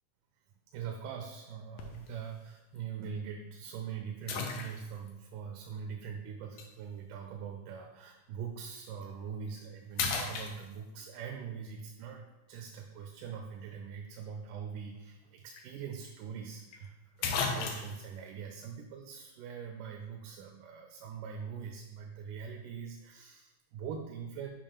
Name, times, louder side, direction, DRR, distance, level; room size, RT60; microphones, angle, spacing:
voice 1, 0.7-24.5, right 7 dB, 85° right, 3 dB, 2.1 m, -42 dB
sound 1, 1.8-2.1 2.8-2.9 4.3-5.1 6.6-6.7 8.9-9.0 9.5-9.7 10.0-11.1 15.2-15.3 15.6-15.7 16.7-16.8 17.2-18.1, left 5 dB, 85° left, 1.4 m, -35 dB
7.0 x 2.5 x 5.6 m, 1.1 s
omnidirectional pair, 3.6 m